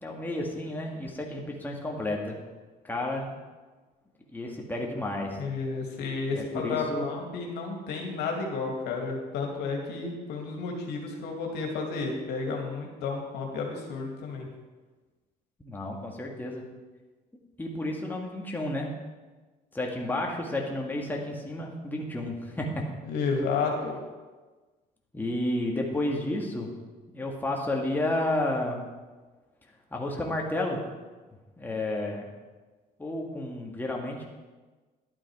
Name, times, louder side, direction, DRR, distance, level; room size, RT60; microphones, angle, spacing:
voice 1, 0.0-2.4 2.8-3.3 4.3-5.4 6.3-7.2 15.6-16.6 17.6-18.9 19.7-22.8 25.1-26.7 27.1-28.9 29.9-30.8 31.6-32.3 33.0-34.3, left 1 dB, 10° left, -1 dB, 1.9 m, -31 dB
voice 2, 5.4-14.5 23.0-24.0, left 4 dB, 85° left, 1 dB, 2.4 m, -32 dB
11.5 x 8.9 x 4.9 m, 1.3 s
cardioid pair, 110°, 17 cm